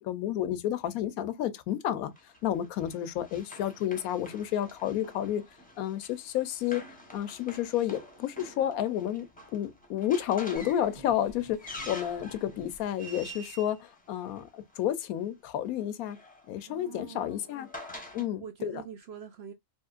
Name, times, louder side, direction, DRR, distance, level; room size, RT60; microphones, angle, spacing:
voice 1, 0.0-5.4 5.8-6.9 7.1-9.3 9.5-16.2 16.5-17.7 18.1-18.8, left 11 dB, 80° left, 1.1 m, -31 dB
Run, 2.2-14.8 15.8-18.3, left 1 dB, 5° left, 0.8 m, -47 dB
sound 1, 10.5-13.3, right 1 dB, 25° right, 1.6 m, -53 dB
voice 2, 16.7-17.4 18.2-19.5, right 8 dB, 60° right, 0.7 m, -44 dB
3.6 x 3.0 x 2.4 m
omnidirectional pair, 1.5 m